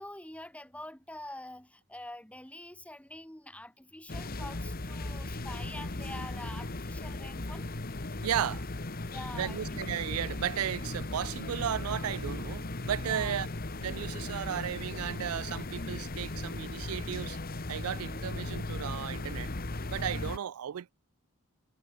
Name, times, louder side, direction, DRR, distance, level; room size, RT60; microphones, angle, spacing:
voice 1, 0.0-7.7 9.0-9.8 13.0-13.4, left 1 dB, 5° left, 1.8 m, -45 dB
sound 1, 4.1-20.4, left 2 dB, 45° left, 1.5 m, -37 dB
voice 2, 8.2-8.6 9.3-13.5 13.8-17.4 17.7-19.5 19.9-20.9, right 9 dB, 90° right, 0.4 m, -34 dB
head